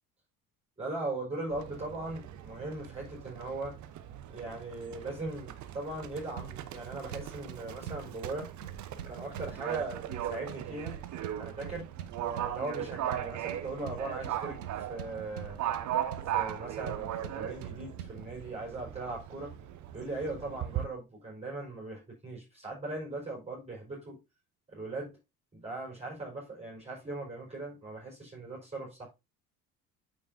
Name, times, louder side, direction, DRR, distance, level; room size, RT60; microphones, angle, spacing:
voice 1, 0.8-3.7 4.3-8.5 9.1-11.0 11.4-11.9 12.4-15.6 16.2-19.5 19.9-24.2 24.7-25.2 25.5-29.1, right 2 dB, 15° right, 4.9 m, -39 dB
Livestock farm animals working animals, 1.5-20.8, right 11 dB, 40° right, 0.9 m, -38 dB
sound 1, 6.4-18.4, right 9 dB, 75° right, 0.9 m, -45 dB
8.6 x 7.4 x 2.7 m
figure-of-eight pair, 55°, 45 cm